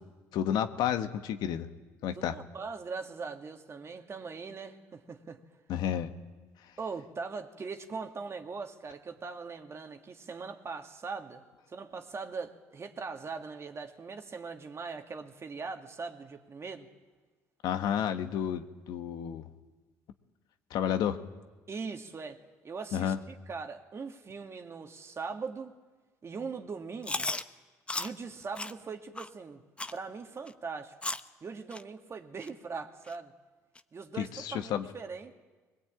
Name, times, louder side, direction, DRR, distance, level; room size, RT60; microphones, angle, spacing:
voice 1, 0.3-1.7 2.0-2.4 5.7-6.1 17.6-19.5 20.7-21.2 22.9-23.2 34.2-34.8, left 9 dB, 70° left, 8 dB, 1.4 m, -31 dB
voice 2, 2.1-5.4 6.8-16.9 21.7-22.4 22.6-25.7 26.2-27.3 28.0-29.6 29.9-31.0 31.4-33.3 33.9-35.3, right 4 dB, 40° right, 5 dB, 2.3 m, -41 dB
Chewing mastication, 27.0-27.4 27.9-28.1 28.5-28.7 29.1-29.3 29.8-30.0 30.5-30.6 31.0-31.3 31.7-31.8 32.4-32.5 33.1-33.2 33.7-33.8, left 2 dB, 15° left, 1.0 m, -34 dB
21.5 x 21.5 x 8.8 m, 1.3 s
supercardioid pair, 70°, 7 cm